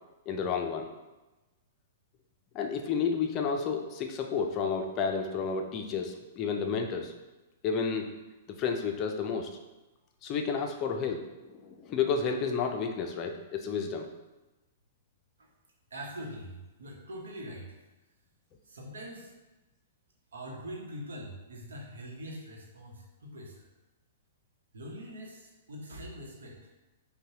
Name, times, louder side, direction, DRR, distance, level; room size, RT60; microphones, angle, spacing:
voice 1, 0.3-0.9 2.5-7.1 7.6-8.1 8.5-9.5 10.2-14.1, left 5 dB, 35° left, 4 dB, 0.5 m, -31 dB
voice 2, 15.9-17.8 18.6-19.3 20.3-23.7 24.7-26.6, equal, 80° right, -1 dB, 0.9 m, -43 dB
5.3 x 2.2 x 2.8 m, 1.1 s
hypercardioid pair, 120°, 0 cm